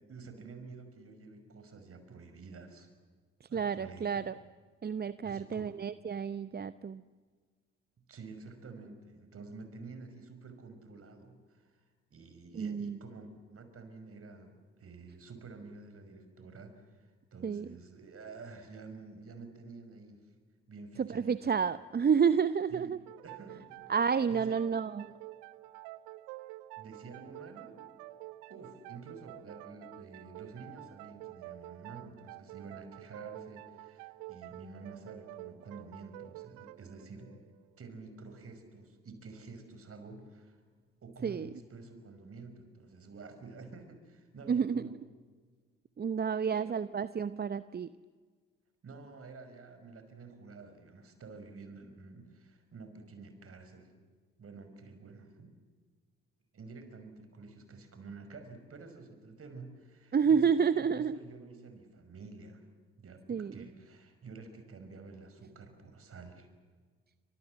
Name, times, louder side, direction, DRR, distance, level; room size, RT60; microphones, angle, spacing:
voice 1, 0.1-2.9 3.5-4.3 5.2-5.8 8.1-11.8 12.1-20.2 20.7-21.4 22.7-22.9 23.2-23.9 24.3-24.9 26.8-27.8 28.5-37.4 37.8-40.6 41.0-45.0 46.4-46.8 48.8-53.9 54.4-55.6 56.5-62.7 63.0-66.5, right 4 dB, 50° right, 8 dB, 5.7 m, -49 dB
voice 2, 3.4-4.3 4.8-7.0 12.6-13.0 17.4-17.7 21.0-23.0 23.9-25.0 41.2-41.5 44.5-44.9 46.0-47.9 60.1-61.2 63.3-63.7, right 6 dB, 30° right, 15 dB, 0.8 m, -30 dB
sound 1, 23.1-38.4, right 17 dB, 75° right, 0.7 m, -49 dB
29.5 x 26.0 x 7.6 m, 1.5 s
hypercardioid pair, 45°, 30 cm